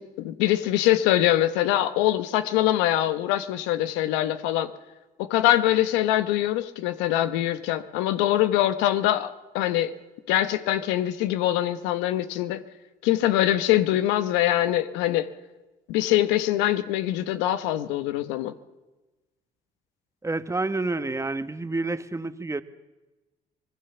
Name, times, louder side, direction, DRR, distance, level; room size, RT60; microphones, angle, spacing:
voice 1, 0.0-4.7 5.2-9.9 10.3-12.6 13.0-15.3 15.9-18.5, left 13 dB, 85° left, 11 dB, 1.1 m, -23 dB
voice 2, 20.2-22.6, right 2 dB, 15° right, 11 dB, 1.5 m, -29 dB
25.5 x 20.5 x 7.0 m, 1.1 s
supercardioid pair, 65°, 18 cm